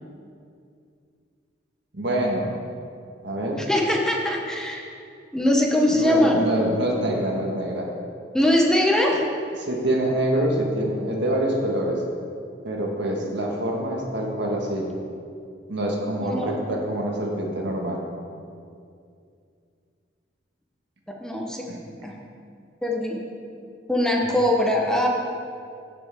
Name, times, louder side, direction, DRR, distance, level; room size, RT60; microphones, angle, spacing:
voice 1, 1.9-2.5 3.2-3.6 5.9-7.9 9.6-12.0 12.6-14.9 15.7-18.0 21.7-21.8, right 1 dB, 65° right, -1 dB, 1.6 m, -25 dB
voice 2, 3.7-4.8 5.3-6.4 8.3-9.2 16.2-16.6 21.1-21.7 22.0-22.2 22.8-23.2 23.9-25.1, left 1 dB, 5° left, -1 dB, 1.0 m, -21 dB
16.5 x 6.3 x 3.6 m, 2.4 s
head